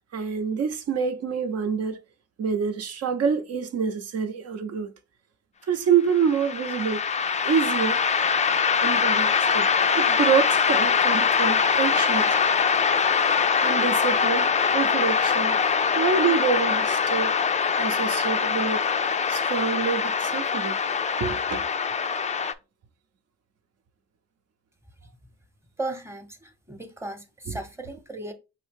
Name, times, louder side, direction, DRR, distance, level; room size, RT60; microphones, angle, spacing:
voice 1, 0.1-2.0 2.4-4.9 5.7-7.0 7.4-8.0 8.8-12.4 13.6-15.6 15.9-17.4 17.8-18.8 19.3-20.8 21.2-21.6, right 6 dB, 55° right, 0.8 m, -26 dB
sound 1, 6.1-22.5, left 6 dB, 25° left, 0.4 m, -23 dB
voice 2, 25.8-28.3, right 2 dB, 10° right, 0.9 m, -36 dB
5.5 x 2.8 x 3.5 m
cardioid pair, 90°, 30 cm